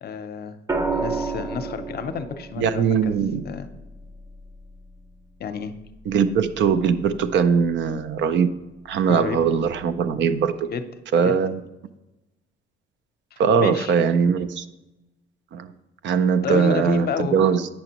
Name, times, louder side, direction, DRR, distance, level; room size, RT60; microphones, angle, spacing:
voice 1, 0.0-0.6 1.0-3.2 3.4-3.7 5.4-5.7 9.1-9.4 10.7-10.8 11.2-11.4 13.3-13.9 16.4-17.3, left 6 dB, 50° left, 8 dB, 0.6 m, -30 dB
sound 1, 0.7-4.8 6.5-6.9, right 3 dB, 15° right, 0.7 m, -31 dB
voice 2, 2.6-3.4 6.1-8.5 8.9-10.7 11.1-11.6 13.4-14.7 15.5-15.7 16.0-17.7, right 6 dB, 70° right, 11 dB, 0.5 m, -21 dB
8.7 x 5.9 x 2.9 m, 0.99 s
cardioid pair, 90°, 20 cm